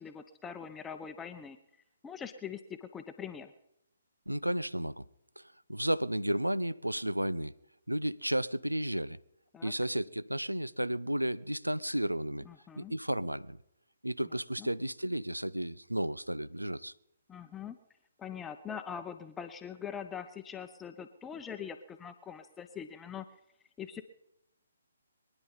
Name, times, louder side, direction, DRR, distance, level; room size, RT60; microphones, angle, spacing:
voice 1, 0.0-1.6 2.0-3.5 9.5-9.7 12.4-12.9 14.6-14.7 17.3-17.8 18.2-23.3 23.8-24.0, left 7 dB, 10° left, 0.8 m, -42 dB
voice 2, 4.3-5.0 5.4-5.5 5.7-7.5 7.9-9.2 9.6-12.5 12.8-13.6 14.0-16.9, right 1 dB, 90° right, 0.6 m, -33 dB
23.0 x 10.0 x 5.5 m
figure-of-eight pair, 135°, 0 cm